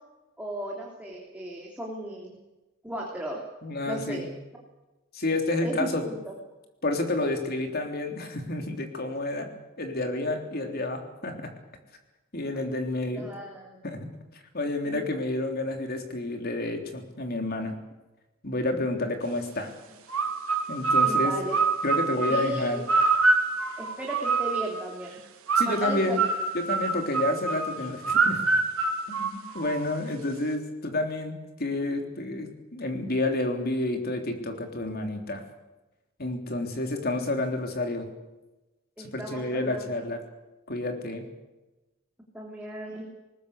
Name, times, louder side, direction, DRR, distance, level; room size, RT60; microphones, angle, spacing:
voice 1, 0.4-2.3 2.8-3.4 3.9-4.2 5.6-6.3 13.1-13.8 14.8-15.0 21.0-21.5 22.3-22.8 23.8-25.2 25.6-26.2 39.0-39.9 42.3-43.1, right 1 dB, 5° right, -2 dB, 3.3 m, -35 dB
voice 2, 3.6-4.3 5.1-6.0 6.8-9.5 9.8-11.5 12.3-13.2 13.8-14.1 14.5-17.7 18.4-19.7 20.7-21.4 21.8-22.8 25.5-26.2 26.5-28.4 29.1-35.4 36.2-38.1 39.0-40.2 40.7-41.2, left 2 dB, 45° left, 4 dB, 3.4 m, -30 dB
sound 1, 20.1-24.8 25.5-29.9, right 4 dB, 90° right, 3.2 m, -26 dB
20.0 x 20.0 x 8.3 m, 1.1 s
head